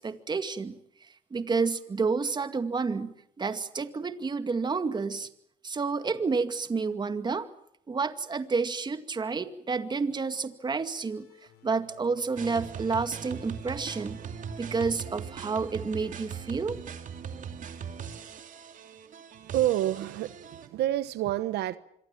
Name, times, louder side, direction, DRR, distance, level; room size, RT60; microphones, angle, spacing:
voice 1, 0.0-5.3 5.6-7.5 7.9-11.3 11.6-14.2 14.6-16.8, right 4 dB, 25° right, 2.1 m, -30 dB
sound 1, 10.7-15.9, left 9 dB, 85° left, 7.5 m, -60 dB
sound 2, 12.4-20.7, right 7 dB, 50° right, 2.7 m, -40 dB
voice 2, 19.4-21.8, right 13 dB, 75° right, 1.1 m, -28 dB
26.0 x 23.5 x 7.4 m
cardioid pair, 110°, 17 cm